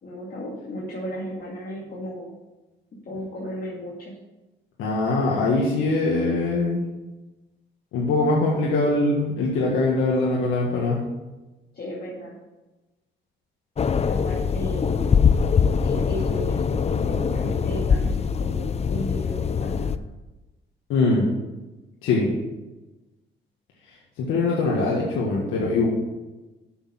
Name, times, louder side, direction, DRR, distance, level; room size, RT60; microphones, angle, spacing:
voice 1, 0.0-2.3 3.0-4.2 11.7-12.3 14.0-15.1 15.8-19.9, equal, 50° left, -5 dB, 2.2 m, -34 dB
voice 2, 4.8-6.8 7.9-11.0 20.9-21.3 22.0-22.3 23.9-25.9, left 3 dB, 85° left, -4 dB, 1.7 m, -22 dB
sound 1, 13.8-20.0, left 6 dB, 30° left, 0.5 m, -23 dB
7.8 x 6.4 x 6.4 m, 1.1 s
cardioid pair, 90°, 20 cm